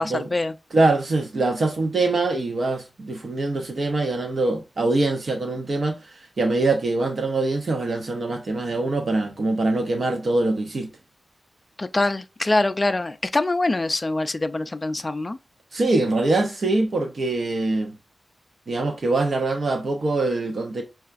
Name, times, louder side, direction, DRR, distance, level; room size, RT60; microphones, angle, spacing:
voice 1, 0.0-0.5 11.8-15.4, left 2 dB, 25° left, 0.3 m, -24 dB
voice 2, 0.7-10.9 15.7-18.0 18.7-20.8, right 2 dB, 55° right, 0.6 m, -23 dB
5.6 x 2.3 x 2.5 m
wide cardioid pair, 135°, 0 cm